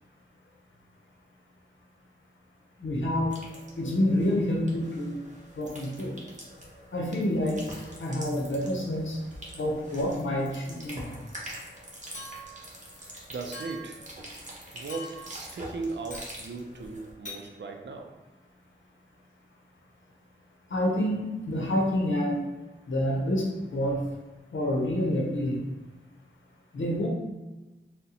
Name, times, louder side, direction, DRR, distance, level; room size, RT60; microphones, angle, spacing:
voice 1, 2.8-3.3 3.8-5.1 5.5-6.2 6.9-7.6 8.0-9.2 9.6-11.1 20.7-22.4 22.9-24.0 24.5-25.6 26.7-27.1, left 1 dB, 85° left, -1 dB, 0.7 m, -28 dB
sound 1, 3.3-17.1, right 1 dB, 40° right, 0.9 m, -45 dB
Chink clink, 12.1-12.7 13.5-14.0 14.9-15.4 16.1-16.4 17.3-17.4, left 1 dB, 40° left, 0.9 m, -42 dB
voice 2, 13.3-14.1 14.7-18.2, right 3 dB, 70° right, 4 dB, 0.4 m, -37 dB
3.9 x 2.1 x 2.8 m, 1.1 s
cardioid pair, 45°, 19 cm